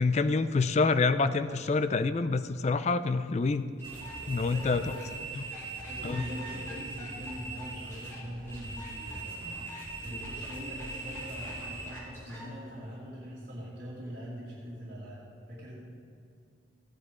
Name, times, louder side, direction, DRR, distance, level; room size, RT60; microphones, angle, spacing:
voice 1, 0.0-3.7 4.3-4.8 5.4-5.5 6.0-6.2, left 4 dB, 35° left, 12 dB, 0.3 m, -27 dB
sound 1, 3.8-12.5, right 3 dB, 15° left, 2.8 m, -41 dB
sound 2, 3.8-11.8, equal, 25° right, 2.4 m, -47 dB
voice 2, 4.4-5.1 5.8-9.4 10.0-15.8, equal, 50° right, -9 dB, 2.4 m, -42 dB
15.0 x 9.5 x 3.7 m, 2.4 s
head